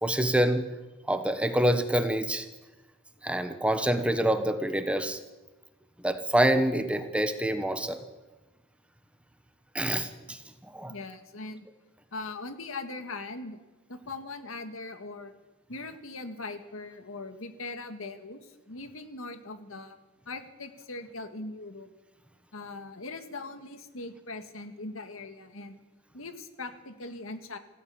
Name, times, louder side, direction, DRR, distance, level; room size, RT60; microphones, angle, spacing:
voice 1, 0.0-0.7 1.1-2.5 3.2-5.2 6.0-8.0 9.7-10.9, right 1 dB, 5° right, 9 dB, 1.2 m, -26 dB
voice 2, 10.9-11.7 12.1-13.6 13.9-15.3 15.7-20.0 20.3-21.9 22.5-25.8 26.1-27.6, left 3 dB, 75° left, 8 dB, 2.0 m, -40 dB
26.0 x 16.0 x 7.2 m, 1.2 s
head